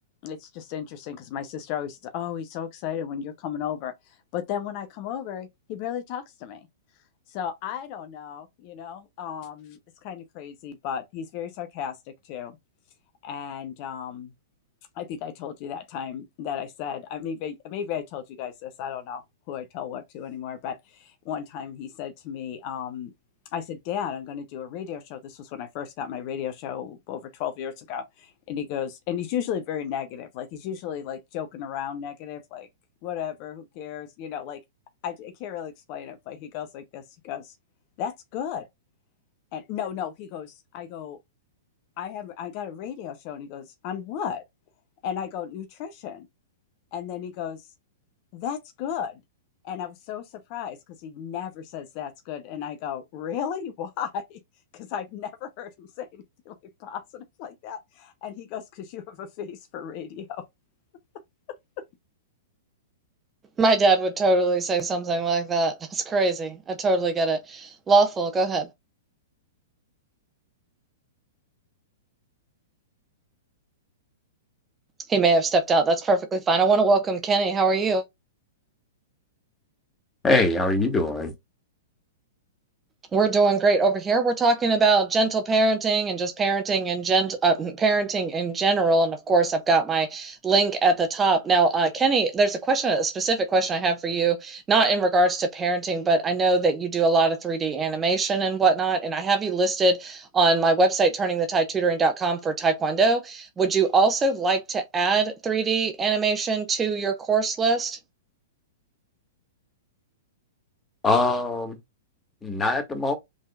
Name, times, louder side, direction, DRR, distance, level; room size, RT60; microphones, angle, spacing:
voice 1, 0.2-6.7 7.3-12.0 12.2-12.6 13.2-14.3 14.9-23.1 23.5-32.7 33.0-34.6 35.0-37.6 38.0-38.7 39.5-41.2 42.0-44.4 45.0-46.3 46.9-47.7 48.3-49.2 49.6-54.4 54.7-56.5 56.8-60.4 61.8-61.9, left 8 dB, 45° left, 0.8 m, -34 dB
voice 2, 63.6-68.7 75.1-78.0 83.1-108.0, right 3 dB, 20° right, 1.1 m, -22 dB
voice 3, 80.2-81.3 111.0-111.8 112.4-113.1, left 2 dB, 15° left, 1.9 m, -22 dB
5.1 x 3.7 x 2.4 m
hypercardioid pair, 110°, 0 cm